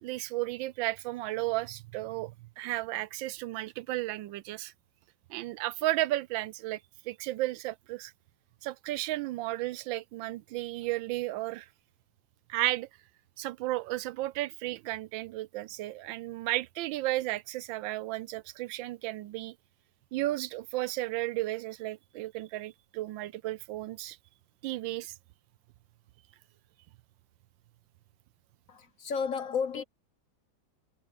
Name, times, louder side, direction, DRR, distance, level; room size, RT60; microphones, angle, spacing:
voice 1, 0.0-4.7 5.3-6.8 7.1-8.1 8.6-11.7 12.5-12.9 13.4-19.5 20.1-24.2 24.6-25.1, right 17 dB, 90° right, 1.4 m, -33 dB
voice 2, 28.7-29.8, left 6 dB, 55° left, 1.1 m, -32 dB
omnidirectional pair, 2.0 m